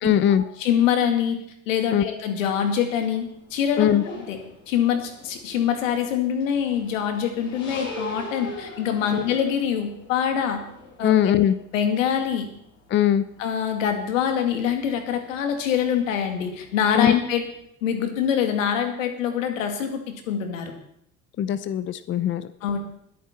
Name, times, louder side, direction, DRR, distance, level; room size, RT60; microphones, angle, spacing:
voice 1, 0.0-0.4 1.9-2.1 3.8-4.0 9.1-9.2 11.0-11.6 12.9-13.2 16.9-17.2 21.4-22.5, left 10 dB, 30° left, 15 dB, 0.6 m, -20 dB
voice 2, 0.6-4.4 4.7-10.6 11.0-11.4 11.7-12.5 13.4-17.4 17.8-20.7 22.6-22.8, left 8 dB, 70° left, 6 dB, 2.3 m, -24 dB
sound 1, 2.4-17.6, left 1 dB, 45° left, 7.5 m, -43 dB
20.5 x 9.2 x 4.3 m, 0.71 s
figure-of-eight pair, 65°, 41 cm